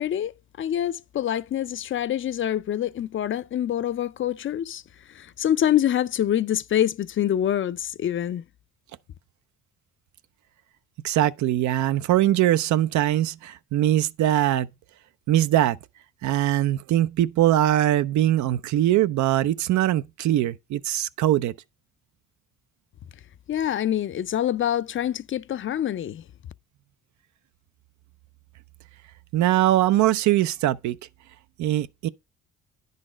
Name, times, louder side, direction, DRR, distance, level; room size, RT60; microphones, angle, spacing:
voice 1, 0.0-4.8 5.1-8.4 23.5-26.2, left 11 dB, 45° left, 0.4 m, -26 dB
voice 2, 11.0-14.7 15.3-15.8 16.2-21.5 29.3-31.0 31.6-32.1, right 13 dB, 75° right, 0.5 m, -22 dB
9.8 x 4.1 x 4.9 m
cardioid pair, 90°, 30 cm